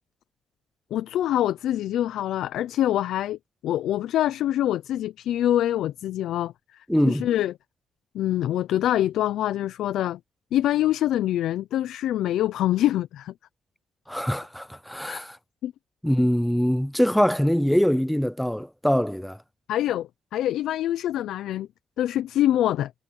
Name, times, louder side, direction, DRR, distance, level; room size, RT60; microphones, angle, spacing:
voice 1, 0.9-7.5 8.1-10.2 10.5-13.3 15.1-15.2 15.6-15.7 19.7-21.7 22.0-22.9, left 12 dB, 80° left, 0.6 m, -25 dB
voice 2, 6.9-7.3 14.1-15.4 16.0-19.4, equal, ahead, 0.7 m, -23 dB
cardioid pair, 90°, 0 cm